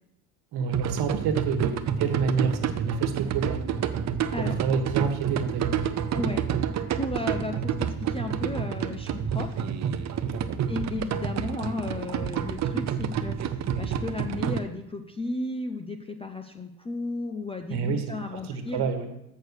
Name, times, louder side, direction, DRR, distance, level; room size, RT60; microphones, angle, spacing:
voice 1, 0.5-3.9 4.4-6.0 10.2-10.6 17.7-18.0 18.3-19.1, right 5 dB, 55° right, 6 dB, 1.6 m, -29 dB
sound 1, 0.7-14.6, right 8 dB, 35° right, 0.6 m, -29 dB
voice 2, 6.1-6.6 6.9-9.7 10.7-18.9, left 3 dB, 15° left, 5 dB, 0.5 m, -34 dB
6.7 x 6.5 x 6.4 m, 0.87 s
supercardioid pair, 110°, 47 cm